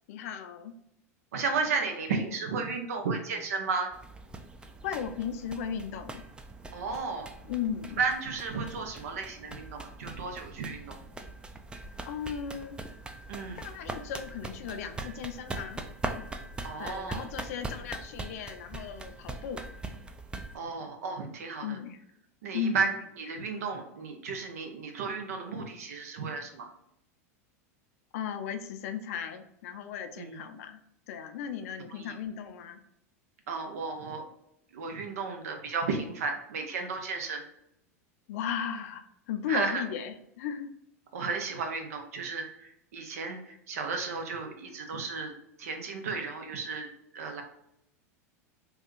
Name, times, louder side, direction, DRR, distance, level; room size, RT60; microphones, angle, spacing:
voice 1, 0.1-0.7 4.8-6.2 7.4-8.0 12.0-12.8 13.6-15.8 16.8-19.6 21.6-22.0 22.5-22.9 28.1-30.8 31.1-32.8 38.3-39.0 39.3-40.7, left 7 dB, 65° left, 7 dB, 0.5 m, -36 dB
voice 2, 1.3-3.9 6.7-7.3 8.0-11.0 13.3-13.6 16.6-17.3 20.5-21.8 22.4-26.7 30.2-30.4 31.9-32.1 33.5-34.2 34.7-37.4 39.5-39.8 41.1-45.3 45.6-47.4, right 4 dB, 75° right, 4 dB, 0.7 m, -33 dB
sound 1, 3.9-20.6, right 2 dB, 10° right, 0.3 m, -42 dB
3.4 x 2.3 x 3.0 m, 0.78 s
hypercardioid pair, 95°, 8 cm